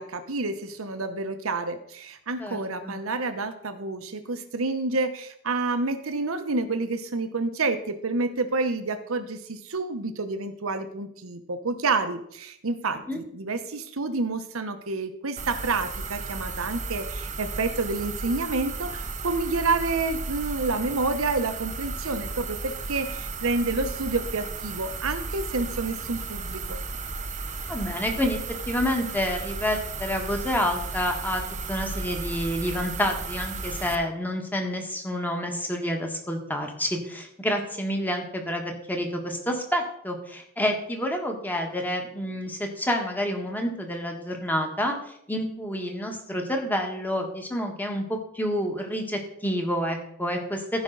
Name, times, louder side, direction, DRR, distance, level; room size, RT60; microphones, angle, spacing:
voice 1, 0.0-26.8, right 3 dB, 70° right, 9 dB, 1.0 m, -29 dB
sound 1, 15.4-34.0, right 4 dB, 35° right, 0.7 m, -34 dB
voice 2, 27.7-28.4 28.7-31.4 31.7-50.8, equal, 10° left, 3 dB, 1.4 m, -28 dB
14.5 x 5.3 x 3.9 m, 0.71 s
head